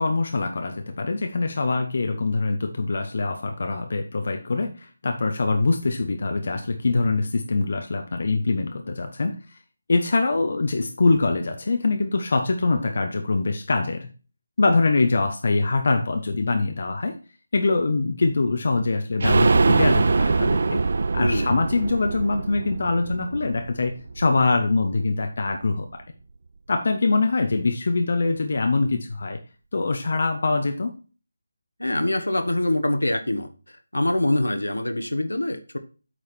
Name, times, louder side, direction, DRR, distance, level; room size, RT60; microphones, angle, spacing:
voice 1, 0.0-9.6 9.9-14.1 14.6-17.2 17.5-20.8 21.1-26.0 26.7-29.4 29.7-30.9, left 3 dB, 50° left, 6 dB, 0.9 m, -23 dB
sound 1, 19.2-24.8 25.1-25.2 25.5-25.6, right 4 dB, 50° right, 0.4 m, -23 dB
voice 2, 21.2-21.5 31.8-33.5 33.9-35.8, left 1 dB, 75° left, 8 dB, 1.4 m, -24 dB
8.6 x 4.9 x 4.4 m, 0.35 s
figure-of-eight pair, 155°, 0 cm